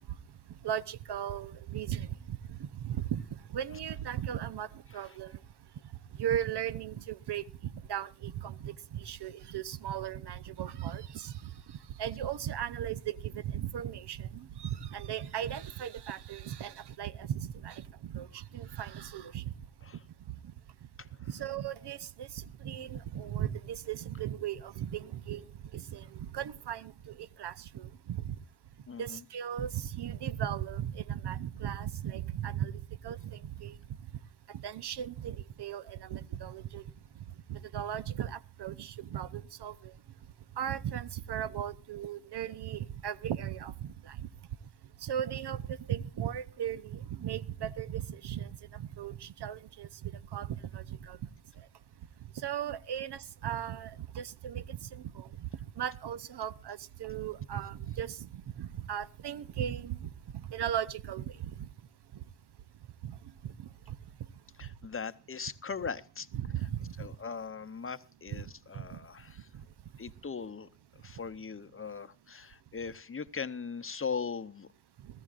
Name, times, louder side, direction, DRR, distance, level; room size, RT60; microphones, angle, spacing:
voice 1, 0.6-3.2 3.5-4.7 4.9-5.3 6.2-11.5 12.0-19.5 21.3-25.4 25.7-26.1 26.3-28.4 29.0-32.7 33.0-33.7 34.6-36.8 37.5-39.9 40.6-44.3 45.0-50.5 50.7-51.2 52.4-55.5 55.8-58.2 58.6-60.1 60.3-61.7 63.0-63.1 63.6-63.7 66.3-67.1 68.3-68.4 68.8-69.0, right 10 dB, 70° right, 0.7 m, -37 dB
voice 2, 28.9-29.2 64.6-66.3 67.0-69.5 70.0-70.7 71.0-74.7, left 5 dB, 30° left, 0.7 m, -39 dB
22.0 x 14.5 x 2.5 m
cardioid pair, 60°, 41 cm